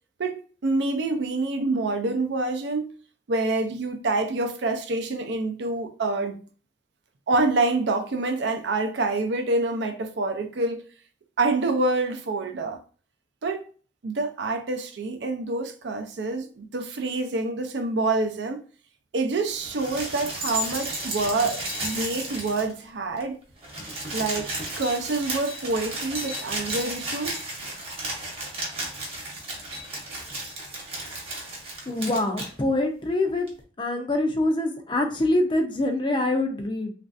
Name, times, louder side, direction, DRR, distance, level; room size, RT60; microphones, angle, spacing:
voice 1, 0.2-2.9 3.3-6.4 7.3-10.8 11.4-12.8 13.4-13.7 14.0-18.6 19.1-23.4 24.1-24.5 24.8-27.4, right 2 dB, 70° right, 0.5 m, -26 dB
sound 1, 19.6-22.9 23.2-23.3 23.5-32.5 33.5-33.6, right 1 dB, 35° right, 0.9 m, -33 dB
voice 2, 31.9-33.5 33.8-36.9, left 2 dB, 25° left, 0.5 m, -25 dB
3.1 x 2.5 x 2.5 m
head